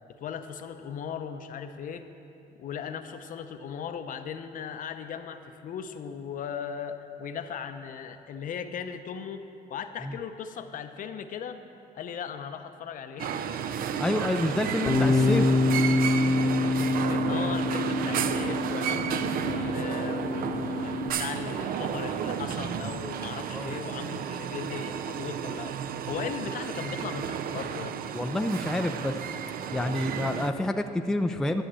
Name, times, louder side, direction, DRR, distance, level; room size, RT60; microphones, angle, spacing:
voice 1, 0.2-2.1 2.6-11.6 11.9-13.4 16.8-25.8 26.1-27.9, left 7 dB, 50° left, 8 dB, 0.7 m, -38 dB
sound 1, 13.2-30.5, right 8 dB, 60° right, 0.5 m, -32 dB
voice 2, 14.0-15.5 23.5-23.7 28.1-29.1 29.7-31.6, left 1 dB, 5° left, 6 dB, 0.4 m, -28 dB
Bass guitar, 14.9-21.1, left 3 dB, 25° left, 0.9 m, -26 dB
11.5 x 6.5 x 7.6 m, 2.8 s
cardioid pair, 110°, 17 cm